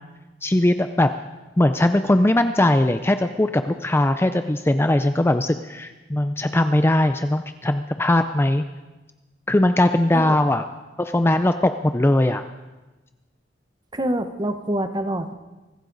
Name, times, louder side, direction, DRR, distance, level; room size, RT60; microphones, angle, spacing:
voice 1, 0.4-1.1 1.6-8.6 9.5-10.6 11.0-12.4, left 1 dB, 15° left, 9 dB, 0.4 m, -20 dB
voice 2, 13.9-15.3, right 1 dB, 25° right, 9 dB, 1.0 m, -26 dB
24.0 x 15.0 x 4.0 m, 1.2 s
head